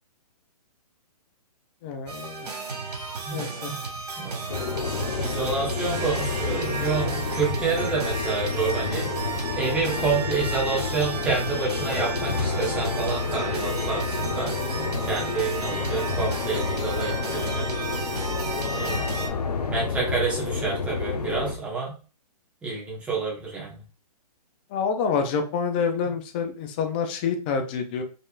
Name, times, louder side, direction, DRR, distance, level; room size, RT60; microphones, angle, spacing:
voice 1, 1.8-2.5 3.3-3.7 24.7-28.0, left 6 dB, 15° left, 5 dB, 0.4 m, -27 dB
sound 1, 2.1-19.3, right 4 dB, 85° right, 2.1 m, -33 dB
voice 2, 3.2-3.8 4.2-4.4 5.2-14.6 15.1-17.7 18.6-19.1 19.7-22.0 22.6-23.8, right 4 dB, 5° right, -4 dB, 1.2 m, -29 dB
sound 2, 4.5-21.6, left 5 dB, 75° left, 1.0 m, -30 dB
5.4 x 3.5 x 2.4 m, 0.35 s
hypercardioid pair, 160°, 20 cm